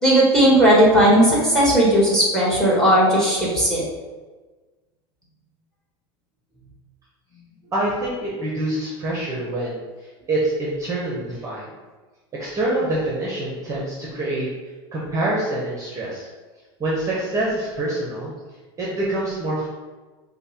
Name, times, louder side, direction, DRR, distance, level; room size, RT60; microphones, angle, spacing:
voice 1, 0.0-3.8, right 1 dB, 5° left, -5 dB, 1.4 m, -16 dB
voice 2, 7.7-9.8 10.3-11.7 12.3-14.5 14.9-16.3 16.8-18.3 18.8-19.7, right 1 dB, 20° right, -5 dB, 0.8 m, -25 dB
5.0 x 2.1 x 2.9 m, 1.3 s
supercardioid pair, 120°, 14 cm